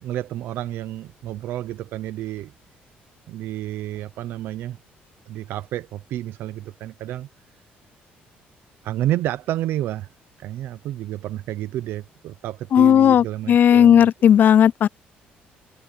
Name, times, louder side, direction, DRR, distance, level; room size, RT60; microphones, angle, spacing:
voice 1, 0.0-2.5 3.3-4.8 5.3-7.3 8.8-10.1 10.4-14.1, right 13 dB, 75° right, 0.9 m, -30 dB
voice 2, 12.7-14.9, left 9 dB, 55° left, 0.4 m, -14 dB
cardioid pair, 100°, 4 cm